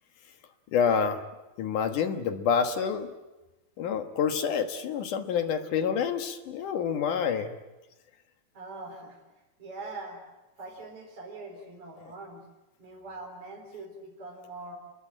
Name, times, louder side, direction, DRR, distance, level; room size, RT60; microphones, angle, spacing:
voice 1, 0.7-1.2 1.6-3.1 3.8-7.5, left 7 dB, 60° left, 7 dB, 2.7 m, -27 dB
voice 2, 8.5-9.2 9.6-10.2 10.6-12.4 12.8-14.8, right 2 dB, 35° right, -1 dB, 5.0 m, -42 dB
29.5 x 22.0 x 9.0 m, 1.1 s
omnidirectional pair, 4.5 m